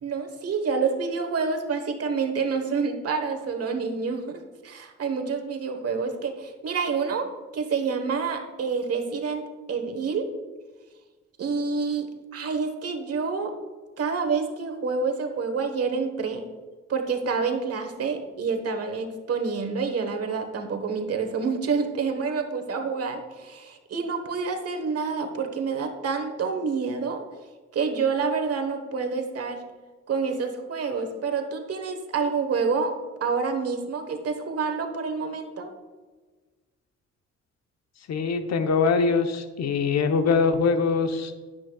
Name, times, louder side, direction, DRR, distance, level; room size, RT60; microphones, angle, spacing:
voice 1, 0.0-9.4 9.7-10.3 11.4-13.5 14.0-16.5 16.9-27.2 27.7-29.6 30.1-32.9 33.2-35.7, right 5 dB, 55° right, 5 dB, 1.3 m, -28 dB
voice 2, 38.1-41.3, left 5 dB, 65° left, 8 dB, 0.9 m, -23 dB
10.5 x 9.7 x 2.3 m, 1.4 s
cardioid pair, 85°, 29 cm